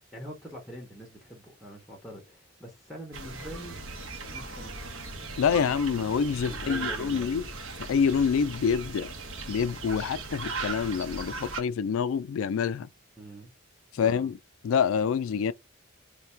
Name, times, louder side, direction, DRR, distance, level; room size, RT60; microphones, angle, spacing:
voice 1, 0.1-3.8 4.3-4.9 5.5-5.7 6.5-7.3 13.2-13.5 14.0-14.3, right 1 dB, ahead, 0.7 m, -44 dB
sound 1, 3.1-11.6, right 3 dB, 65° right, 1.0 m, -38 dB
voice 2, 5.4-7.4 7.9-9.1 9.5-12.9 13.9-14.4 14.6-15.5, left 6 dB, 75° left, 0.3 m, -26 dB
3.2 x 2.3 x 4.3 m
head